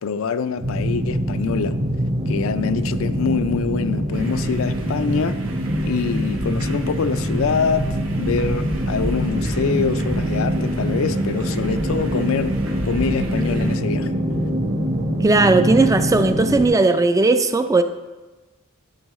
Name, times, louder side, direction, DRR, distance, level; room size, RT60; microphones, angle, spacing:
voice 1, 0.0-1.8 2.3-5.4 5.8-7.9 8.2-12.5 12.8-14.1, left 5 dB, 65° left, 0.4 m, -24 dB
sound 1, 0.6-16.7, equal, 40° right, 1.0 m, -24 dB
sound 2, 4.1-13.8, right 1 dB, 70° right, 1.0 m, -34 dB
voice 2, 15.2-17.8, right 3 dB, 15° right, 0.3 m, -17 dB
11.0 x 7.1 x 3.0 m
head